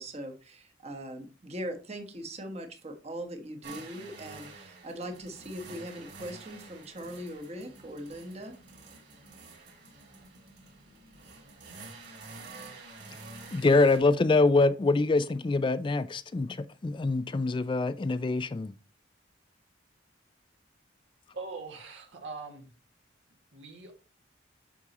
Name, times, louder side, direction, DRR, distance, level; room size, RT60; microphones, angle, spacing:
voice 1, 0.0-8.5, equal, 35° right, 1.2 m, -40 dB
sound 1, 3.6-14.0, right 3 dB, 60° right, 2.9 m, -48 dB
voice 2, 13.5-16.6 16.8-18.7, left 3 dB, 25° left, 0.3 m, -24 dB
voice 3, 21.3-22.7 23.5-23.9, right 4 dB, 80° right, 1.9 m, -42 dB
8.3 x 6.1 x 3.0 m
head